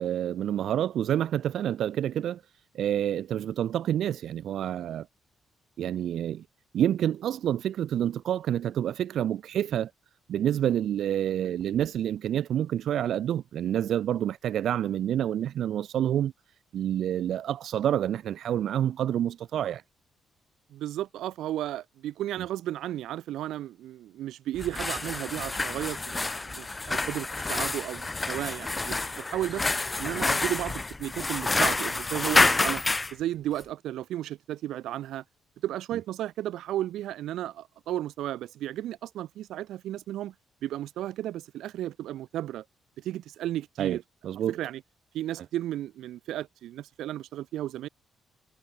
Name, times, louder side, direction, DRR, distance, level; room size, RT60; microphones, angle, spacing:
voice 1, 0.0-2.4 2.7-5.1 5.8-6.4 6.7-9.9 10.3-16.3 16.7-19.8 22.4-22.5 43.8-44.0 44.2-44.6, right 10 dB, 60° right, 1.2 m, -28 dB
voice 2, 20.7-29.7 30.0-32.8 33.1-35.2 35.6-40.3 40.6-42.6 43.0-44.0 44.5-44.8 45.1-47.9, right 13 dB, 85° right, 4.7 m, -34 dB
sound 1, 24.6-33.1, left 3 dB, 15° left, 2.7 m, -28 dB
cardioid pair, 170°, 0 cm